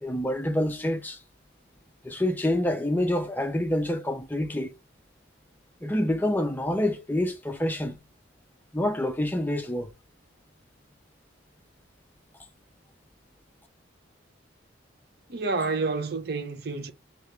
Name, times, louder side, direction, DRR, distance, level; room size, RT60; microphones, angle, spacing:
voice 1, 0.0-1.2 2.0-4.7 5.8-8.0 8.7-9.9, left 1 dB, 10° left, 0.5 m, -27 dB
voice 2, 15.3-16.9, right 3 dB, 50° right, 0.6 m, -29 dB
3.3 x 3.1 x 3.6 m
head